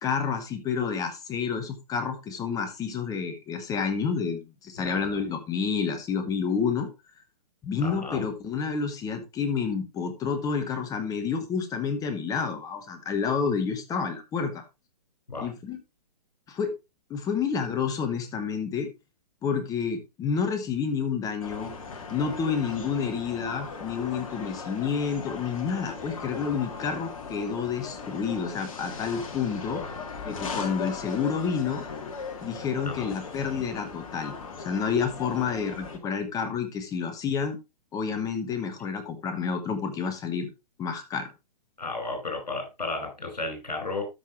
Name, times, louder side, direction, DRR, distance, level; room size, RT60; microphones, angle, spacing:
voice 1, 0.0-6.9 7.6-14.6 15.4-15.8 16.5-16.7 17.1-18.9 19.4-21.7 22.1-29.8 30.2-31.9 32.4-34.3 34.6-37.6 37.9-40.5 40.8-41.3, left 6 dB, 15° left, 8 dB, 1.3 m, -29 dB
voice 2, 4.8-5.2 7.8-8.3 15.3-15.5 29.7-30.0 32.8-33.1 41.8-44.0, left 3 dB, 75° left, 4 dB, 5.1 m, -34 dB
sound 1, 21.4-36.0, left 5 dB, 50° left, 1.9 m, -38 dB
13.0 x 5.9 x 3.0 m, 0.25 s
figure-of-eight pair, 120°, 21 cm